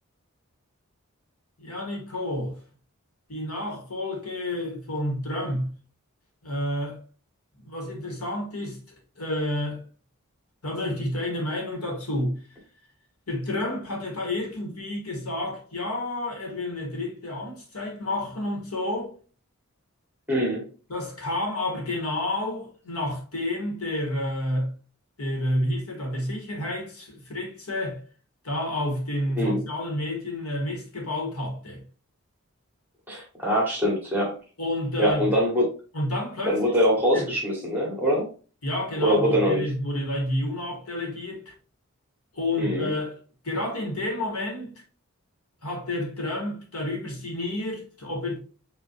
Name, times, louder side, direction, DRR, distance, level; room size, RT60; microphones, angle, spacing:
voice 1, 1.6-2.6 3.3-5.7 6.4-7.0 7.6-9.8 10.6-12.6 13.3-19.1 20.9-24.7 25.2-28.0 28.4-31.8 34.6-35.3 35.9-36.6 37.1-37.3 38.6-41.5 42.3-43.2 43.4-44.7 45.6-48.4, left 1 dB, 90° left, 2.0 m, -30 dB
voice 2, 20.3-20.6 29.4-29.6 33.1-34.3 35.0-35.6 36.4-38.3 39.0-39.6 42.6-42.9, equal, 10° right, 1.7 m, -23 dB
5.1 x 3.1 x 3.2 m
head